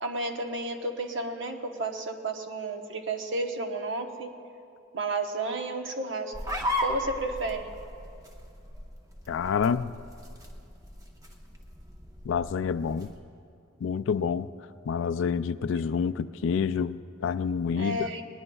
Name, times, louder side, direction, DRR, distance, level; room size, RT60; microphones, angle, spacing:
voice 1, 0.0-4.3 4.9-6.3 6.8-7.7 17.8-18.2, right 2 dB, 60° right, 1.0 m, -32 dB
sound 1, 6.3-13.2, left 1 dB, 15° right, 1.0 m, -36 dB
voice 2, 9.3-9.9 12.2-13.1 13.8-14.5 14.9-18.1, left 6 dB, 65° left, 0.3 m, -28 dB
20.5 x 20.0 x 2.3 m
head